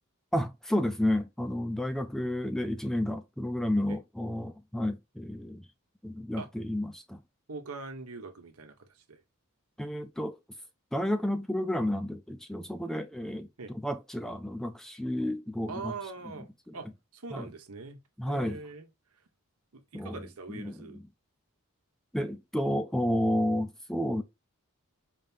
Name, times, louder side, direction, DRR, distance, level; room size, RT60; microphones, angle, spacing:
voice 1, 0.3-5.6 6.0-7.2 9.8-10.4 10.9-13.5 13.8-15.9 16.7-16.8 17.3-17.5 18.2-18.6 19.9-20.2 20.5-21.0 22.1-24.2, left 1 dB, ahead, 0.4 m, -31 dB
voice 2, 7.5-9.2 13.6-13.7 15.7-16.5 16.7-16.9 17.1-18.0 18.3-18.9 19.7-21.0, right 4 dB, 80° right, 1.0 m, -42 dB
5.1 x 2.8 x 3.5 m
head